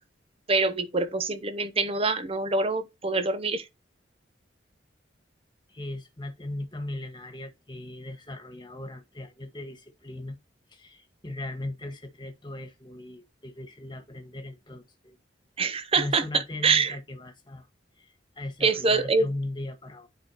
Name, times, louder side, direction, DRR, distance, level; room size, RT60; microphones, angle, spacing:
voice 1, 0.5-3.6 15.6-17.0 18.6-19.3, right 4 dB, 30° right, 0.9 m, -25 dB
voice 2, 5.7-10.4 10.7-15.2 15.9-17.7 18.0-20.1, left 1 dB, 25° left, 1.7 m, -38 dB
10.0 x 5.0 x 3.0 m
head